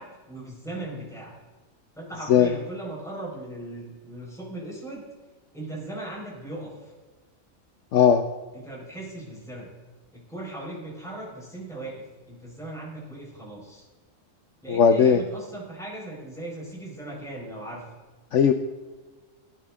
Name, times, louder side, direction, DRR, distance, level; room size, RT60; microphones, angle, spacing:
voice 1, 0.0-1.3 2.0-5.0 5.5-6.9 8.5-9.7 10.1-13.8 14.6-17.9, right 1 dB, ahead, -5 dB, 5.0 m, -38 dB
voice 2, 7.9-8.2 14.7-15.2 18.3-18.5, left 7 dB, 70° left, 8 dB, 1.0 m, -17 dB
17.5 x 10.0 x 3.7 m, 1.3 s
omnidirectional pair, 1.4 m